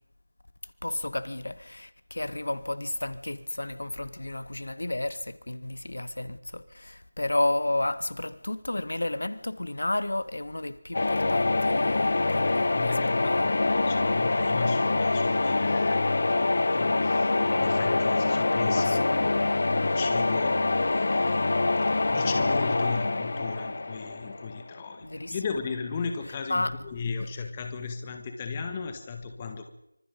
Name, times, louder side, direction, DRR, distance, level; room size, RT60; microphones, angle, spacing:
voice 1, 0.8-13.4 18.8-19.5 25.0-25.3 26.5-26.7, left 1 dB, 65° left, 1.7 m, -32 dB
sound 1, 10.9-24.8, left 2 dB, 45° left, 1.0 m, -25 dB
voice 2, 12.2-19.3 19.8-21.4 21.8-29.8, left 5 dB, 15° left, 1.8 m, -36 dB
26.5 x 25.5 x 5.4 m
figure-of-eight pair, 170°, 0 cm